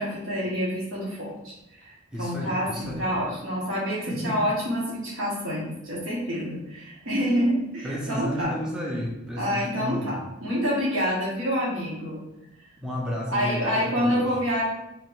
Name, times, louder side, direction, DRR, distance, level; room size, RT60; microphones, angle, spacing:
voice 1, 0.0-1.5 1.8-8.5 9.4-12.2 13.3-14.6, equal, 65° right, -6 dB, 1.1 m, -27 dB
voice 2, 2.1-3.1 4.1-4.4 7.8-10.2 12.8-14.3, equal, 5° right, -4 dB, 0.6 m, -32 dB
2.9 x 2.9 x 4.5 m, 0.89 s
head